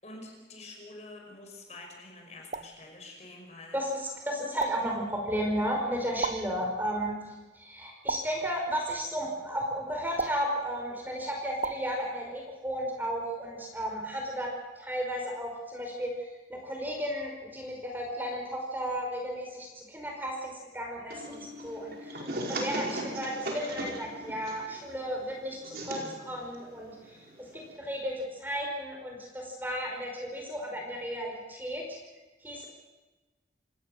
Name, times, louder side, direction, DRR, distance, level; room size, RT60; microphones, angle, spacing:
voice 1, 0.0-3.8, left 2 dB, 40° left, 1 dB, 5.4 m, -47 dB
sound 1, 2.5-2.8 4.6-5.0 6.2-6.6 8.1-8.5 10.2-10.6 11.6-11.9, right 3 dB, 45° right, 0.7 m, -34 dB
voice 2, 3.7-14.5 14.8-22.2 22.5-27.3 27.5-31.8 32.4-32.7, equal, 10° right, 0 dB, 5.3 m, -34 dB
sound 2, 21.1-27.8, right 1 dB, 60° right, 5.1 m, -38 dB
27.5 x 18.5 x 6.6 m, 1.2 s
head